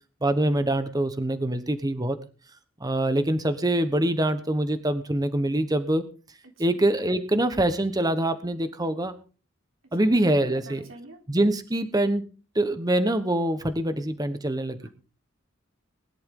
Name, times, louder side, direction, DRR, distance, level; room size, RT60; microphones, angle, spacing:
voice 1, 0.2-2.2 2.8-6.0 6.6-9.1 9.9-10.8 11.3-12.2 12.5-14.8, right 1 dB, 20° right, 10 dB, 1.1 m, -24 dB
voice 2, 9.9-11.2 14.8-14.9, right 2 dB, 85° right, 3 dB, 3.7 m, -47 dB
20.5 x 11.5 x 3.7 m, 0.36 s
head